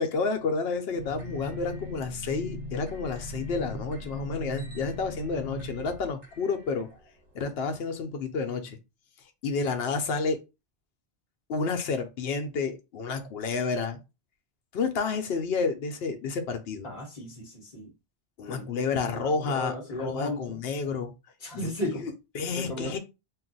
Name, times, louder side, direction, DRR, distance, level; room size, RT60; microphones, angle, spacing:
voice 1, 0.0-6.9 7.3-8.8 9.4-10.4 11.5-14.0 14.7-16.9 18.4-21.1 21.6-21.7 22.0-23.0, left 4 dB, 70° left, 0.8 m, -30 dB
sound 1, 0.9-7.5, equal, 40° right, 1.1 m, -40 dB
voice 2, 16.8-17.9 18.5-18.7 19.0-20.6 21.4-22.1 22.5-23.0, left 1 dB, 40° left, 0.8 m, -35 dB
2.3 x 2.1 x 3.8 m
omnidirectional pair, 1.1 m